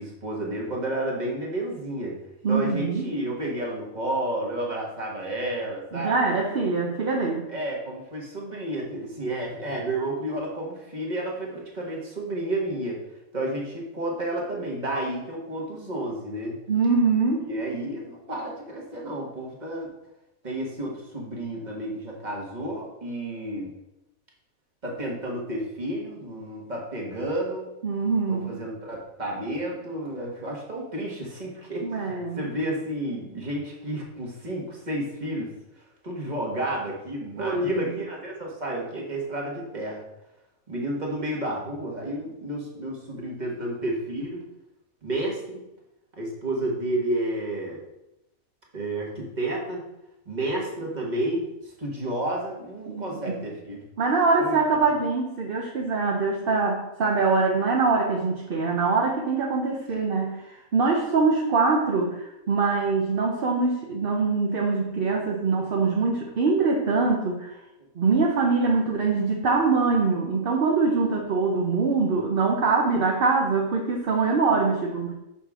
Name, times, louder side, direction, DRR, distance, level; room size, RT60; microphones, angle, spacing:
voice 1, 0.0-2.2 2.5-6.2 7.5-13.0 13.3-16.6 17.4-19.9 20.4-23.7 24.8-27.7 28.3-35.5 36.0-40.0 40.7-44.4 45.0-45.6 46.1-47.8 48.7-49.8 50.2-53.8 54.4-54.6, right 1 dB, 30° right, -2 dB, 1.5 m, -31 dB
voice 2, 2.4-3.1 5.9-7.5 16.7-17.5 27.8-28.6 31.8-32.4 37.4-37.7 52.9-53.4 54.0-60.4 60.7-67.5 68.0-75.1, right 4 dB, 50° right, -1 dB, 0.9 m, -23 dB
6.5 x 5.7 x 3.6 m, 0.91 s
omnidirectional pair, 1.5 m